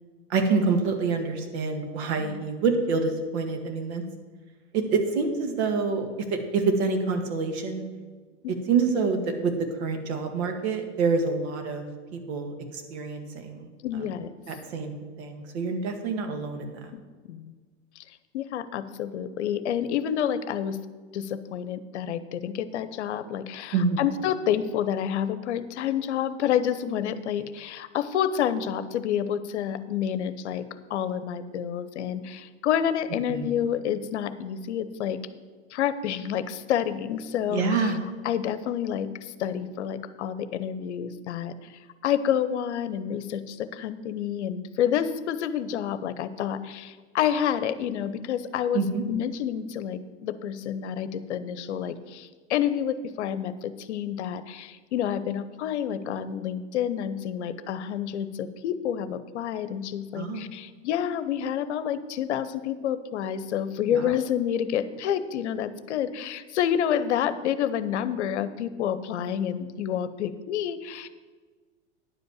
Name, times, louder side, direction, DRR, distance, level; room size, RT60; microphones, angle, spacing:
voice 1, 0.3-4.0 4.7-7.8 8.7-9.5 9.8-11.9 12.1-13.7 14.5-16.9 23.7-24.0 33.3-33.5 37.5-38.0 48.7-49.0 60.1-60.4 63.9-64.2, right 4 dB, 65° right, 5 dB, 1.8 m, -27 dB
voice 2, 13.8-14.4 16.9-17.0 17.3-17.5 18.0-18.1 18.3-20.8 21.1-30.6 30.9-35.2 35.7-37.9 38.2-48.8 49.1-71.1, left 9 dB, 75° left, 13 dB, 0.8 m, -29 dB
10.0 x 5.3 x 8.0 m, 1.4 s
hypercardioid pair, 100°, 35 cm